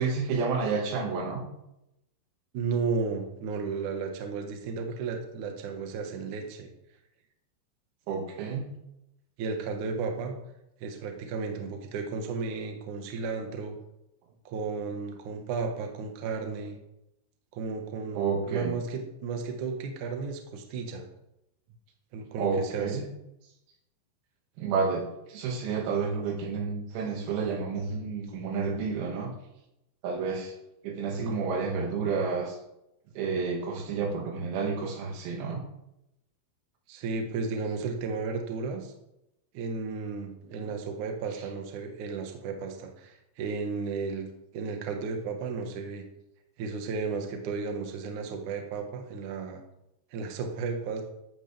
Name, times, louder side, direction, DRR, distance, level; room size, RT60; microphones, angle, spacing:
voice 1, 0.0-1.4 8.1-8.7 18.2-18.7 22.4-23.1 24.6-25.0 25.3-29.3 30.0-30.5 30.8-32.6 33.2-35.6 40.6-40.7, right 5 dB, 85° right, 1 dB, 4.8 m, -30 dB
voice 2, 2.5-6.7 9.4-10.3 10.8-13.8 14.5-16.8 17.5-21.1 22.1-23.0 31.2-31.4 36.9-38.9 39.5-44.3 44.5-46.0 46.6-49.6 50.1-51.0, right 4 dB, 70° right, 3 dB, 1.9 m, -33 dB
14.0 x 10.0 x 3.5 m, 0.86 s
omnidirectional pair, 6.0 m